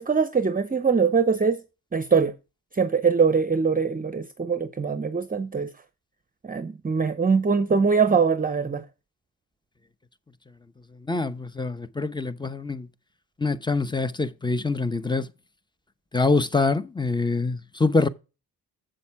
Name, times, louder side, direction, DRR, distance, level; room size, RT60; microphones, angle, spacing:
voice 1, 0.0-1.6 1.9-2.3 2.7-5.7 6.4-8.8, right 5 dB, 25° right, 0.8 m, -22 dB
voice 2, 11.0-12.9 13.4-15.3 16.1-18.1, left 3 dB, 10° left, 0.8 m, -25 dB
7.6 x 6.9 x 4.8 m
cardioid pair, 70°, 37 cm